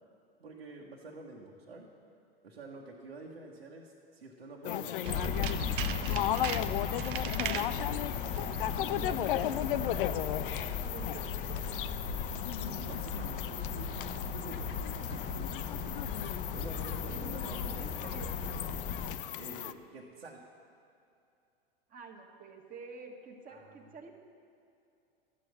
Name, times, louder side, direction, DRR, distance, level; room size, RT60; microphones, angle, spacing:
voice 1, 0.4-1.9 2.4-6.3 7.3-7.7 12.6-14.8 15.1-15.7 16.5-18.7 19.4-20.4 23.5-23.7, right 2 dB, 80° right, -3 dB, 1.4 m, -48 dB
sound 1, 4.6-19.7, left 12 dB, 60° left, 0.6 m, -36 dB
Tools, 5.0-7.8 8.3-8.6 8.9-9.0, right 11 dB, 60° right, 0.7 m, -39 dB
sound 2, 5.1-19.2, left 5 dB, 25° left, 0.8 m, -36 dB
voice 2, 8.9-11.8 17.1-18.3 21.9-24.1, right 4 dB, 30° right, 1 dB, 1.5 m, -48 dB
12.5 x 7.6 x 8.2 m, 2.6 s
figure-of-eight pair, 95°, 30 cm